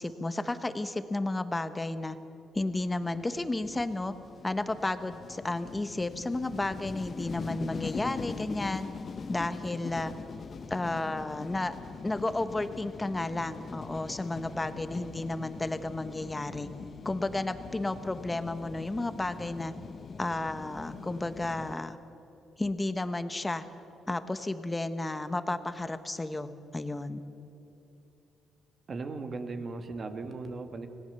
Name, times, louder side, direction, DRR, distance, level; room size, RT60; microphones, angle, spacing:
voice 1, 0.0-2.2 2.5-4.1 4.4-8.9 9.3-10.1 10.7-11.7 12.0-16.7 17.0-19.7 20.2-22.0 22.6-23.7 24.1-27.2, left 2 dB, 15° left, 10 dB, 1.3 m, -32 dB
sound 1, 2.7-21.7, left 5 dB, 45° left, 1.0 m, -42 dB
voice 2, 28.9-30.9, right 3 dB, 45° right, 7 dB, 2.1 m, -37 dB
26.5 x 18.0 x 7.0 m, 2.9 s
cardioid pair, 90°, 0 cm